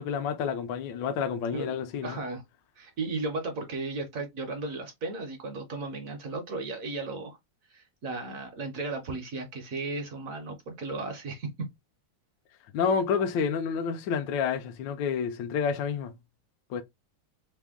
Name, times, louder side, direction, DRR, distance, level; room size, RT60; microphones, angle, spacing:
voice 1, 0.0-2.2 12.7-16.2 16.7-16.8, left 6 dB, 80° left, 1.3 m, -29 dB
voice 2, 2.0-2.4 2.8-7.4 7.7-11.7, right 3 dB, 60° right, 1.0 m, -35 dB
3.4 x 2.1 x 3.4 m
omnidirectional pair, 2.0 m